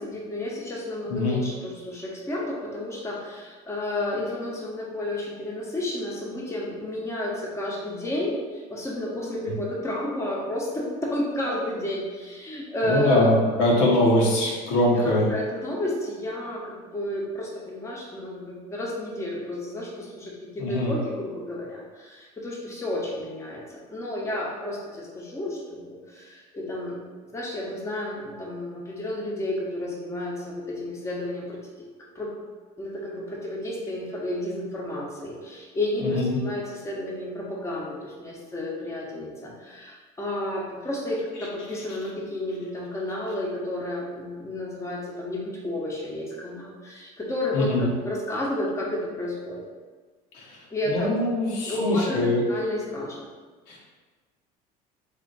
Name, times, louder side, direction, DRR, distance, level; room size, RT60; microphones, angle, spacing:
voice 1, 0.0-13.3 14.8-27.0 27.3-31.9 32.1-32.3 32.8-49.6 50.7-51.1 51.6-53.3, left 1 dB, 15° left, -4 dB, 0.9 m, -31 dB
voice 2, 1.1-1.4 12.8-15.3 20.6-21.0 36.0-36.4 47.5-47.9 50.3-50.4 50.9-52.4 53.7-53.8, left 1 dB, 80° left, -4 dB, 1.0 m, -22 dB
3.4 x 2.5 x 3.9 m, 1.4 s
supercardioid pair, 100°, 19 cm